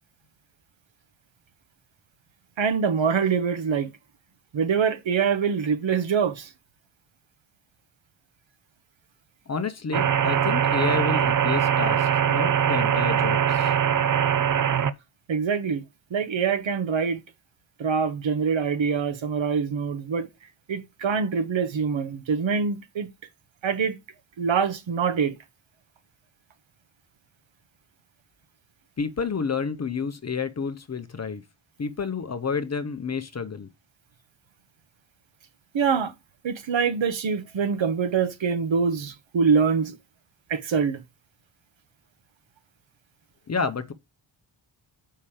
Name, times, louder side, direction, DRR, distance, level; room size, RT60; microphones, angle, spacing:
voice 1, 2.6-3.9 4.5-6.5 15.3-15.8 16.1-17.2 17.8-20.3 20.7-23.1 23.6-24.0 24.4-25.3 35.7-36.1 36.4-39.9 40.5-41.0, right 6 dB, 65° right, 1.4 m, -24 dB
voice 2, 9.5-13.7 29.0-31.4 31.8-33.7 43.5-43.9, left 5 dB, 30° left, 0.7 m, -30 dB
sound 1, 9.9-14.9, right 9 dB, 40° right, 0.6 m, -22 dB
7.2 x 5.5 x 4.9 m
wide cardioid pair, 140°, 50 cm